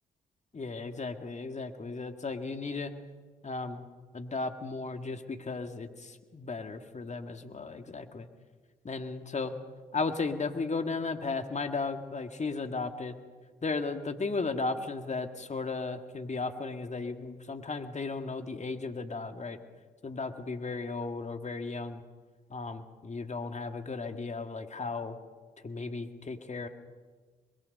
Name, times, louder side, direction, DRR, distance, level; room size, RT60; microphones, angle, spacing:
voice 1, 0.5-2.9 3.4-3.8 4.1-8.3 8.8-9.5 9.9-13.2 13.6-19.6 20.0-22.0 22.5-25.2 25.6-26.7, left 3 dB, 35° left, 7 dB, 1.9 m, -35 dB
24.0 x 21.5 x 5.4 m, 1.4 s
hypercardioid pair, 45°, 20 cm